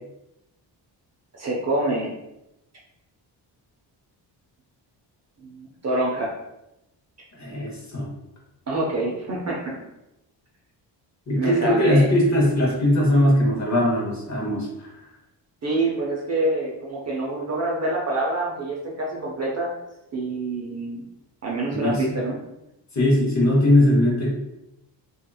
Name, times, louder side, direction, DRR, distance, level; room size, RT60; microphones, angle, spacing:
voice 1, 1.3-2.1 5.4-6.3 8.7-9.8 11.3-12.1 15.6-19.7 20.1-21.0 21.4-22.4, right 2 dB, 35° right, -3 dB, 0.6 m, -26 dB
voice 2, 7.3-8.1 11.3-15.1 21.7-22.2 22.9-24.3, left 1 dB, 40° left, -3 dB, 0.8 m, -20 dB
2.8 x 2.5 x 2.3 m, 0.89 s
wide cardioid pair, 135°, 44 cm